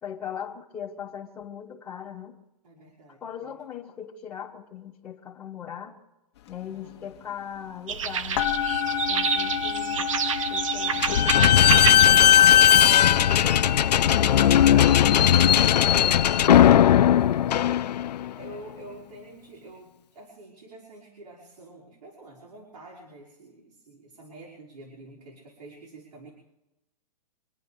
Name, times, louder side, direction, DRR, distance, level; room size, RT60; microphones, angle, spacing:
voice 1, 0.0-2.4 3.2-6.0 6.5-8.5 9.1-10.1 10.5-13.7 14.2-15.2, left 9 dB, 10° left, 1.3 m, -39 dB
voice 2, 2.6-3.5 6.6-7.1 9.2-9.7 15.9-26.3, right 2 dB, 90° right, 5.3 m, -48 dB
sound 1, 6.5-6.6 6.9-8.0 8.3-17.2, left 8 dB, 40° left, 1.2 m, -32 dB
sound 2, 7.9-13.4, right 7 dB, 50° right, 0.9 m, -29 dB
Slam / Squeak, 11.0-18.3, left 10 dB, 85° left, 0.5 m, -18 dB
26.0 x 10.0 x 5.1 m
hypercardioid pair, 170°, 20 cm